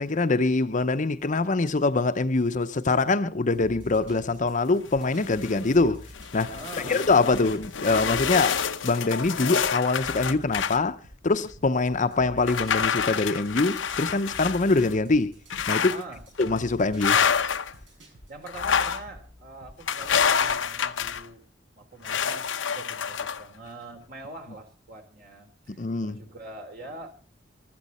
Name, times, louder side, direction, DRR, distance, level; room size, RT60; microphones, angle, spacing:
voice 1, 0.0-6.1 6.3-6.6 6.9-11.0 11.2-15.3 15.7-15.9 16.4-17.2 25.8-26.2, left 3 dB, 45° left, 0.7 m, -24 dB
sound 1, 3.5-20.7, left 1 dB, 90° right, 7.4 m, -49 dB
sound 2, 4.9-5.7 6.1-10.8 11.4-11.5 12.4-14.9 15.5-16.0 16.4-16.6 17.0-17.7 18.5-19.0 19.9-21.3 22.0-23.4, left 7 dB, 90° left, 0.8 m, -28 dB
voice 2, 6.5-7.0 15.9-16.2 18.0-21.5 21.7-22.5 22.7-27.1, right 2 dB, 55° right, 3.9 m, -43 dB
15.0 x 13.0 x 4.3 m
head